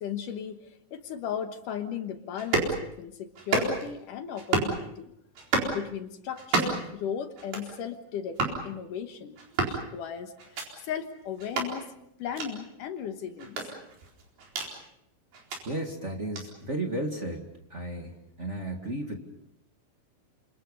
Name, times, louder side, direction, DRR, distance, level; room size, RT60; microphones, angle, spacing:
voice 1, 0.0-5.1 5.7-11.9 12.2-13.7, left 8 dB, 70° left, 7 dB, 2.8 m, -36 dB
sound 1, 2.4-2.7 3.4-3.9 4.4-4.8 5.3-5.8 6.4-6.9 7.4-7.7 8.3-8.6 9.4-9.8 10.4-10.7 11.4-11.7 12.3-12.5 13.4-14.7 15.3-15.6 16.3-16.5, right 4 dB, 85° right, 6.2 m, -29 dB
voice 2, 15.6-17.4 17.7-19.2, right 1 dB, 25° right, 2 dB, 1.7 m, -34 dB
28.5 x 26.5 x 5.5 m, 0.79 s
omnidirectional pair, 4.2 m